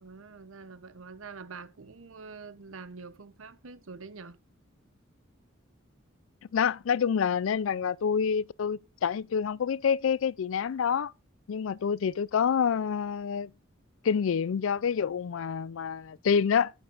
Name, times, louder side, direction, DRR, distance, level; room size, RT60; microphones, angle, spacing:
voice 1, 0.0-4.4, right 4 dB, 85° right, 0.8 m, -45 dB
voice 2, 6.5-11.1 11.5-13.5 14.0-16.7, left 7 dB, 80° left, 0.4 m, -27 dB
11.0 x 9.4 x 2.5 m
head